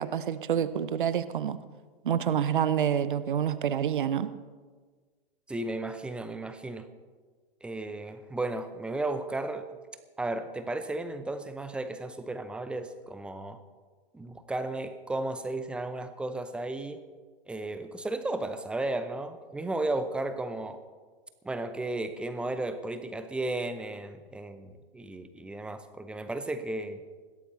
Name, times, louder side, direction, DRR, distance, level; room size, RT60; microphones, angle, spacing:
voice 1, 0.0-1.6 2.0-4.3, right 9 dB, 60° right, 0.9 m, -27 dB
voice 2, 5.5-6.9 7.6-9.7 10.2-13.6 14.1-17.0 17.5-20.8 21.4-27.0, right 2 dB, 5° right, 0.6 m, -34 dB
21.0 x 16.0 x 3.2 m
figure-of-eight pair, 110°, 30 cm